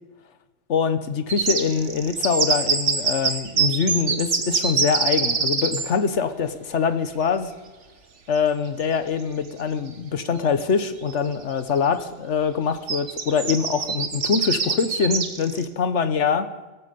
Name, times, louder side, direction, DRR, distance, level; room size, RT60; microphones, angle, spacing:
voice 1, 0.7-7.5 8.3-16.5, left 6 dB, 80° left, 11 dB, 1.4 m, -24 dB
sound 1, 1.3-5.9 8.3-8.4 8.8-8.9 10.2-10.3 10.6-11.1 11.6-11.8 12.9-15.6, right 5 dB, 90° right, 1.7 m, -24 dB
18.0 x 14.5 x 5.3 m, 1.2 s
omnidirectional pair, 1.2 m